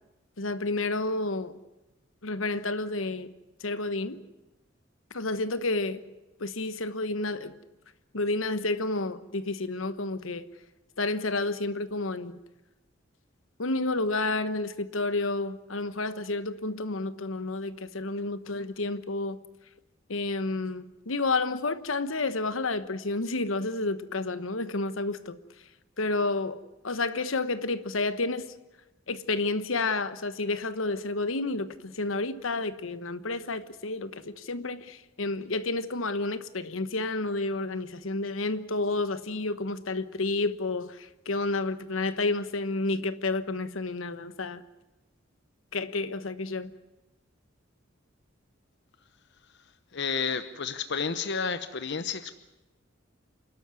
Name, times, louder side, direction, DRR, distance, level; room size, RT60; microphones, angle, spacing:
voice 1, 0.4-1.5 2.2-3.3 3.6-4.2 5.1-6.0 6.4-7.5 8.1-10.5 11.0-12.4 13.6-19.4 20.1-25.4 26.0-28.5 29.1-44.6 45.7-46.7, left 2 dB, 80° left, 1.2 m, -30 dB
voice 2, 49.9-52.3, left 5 dB, 60° left, 0.9 m, -31 dB
28.5 x 12.5 x 9.6 m
head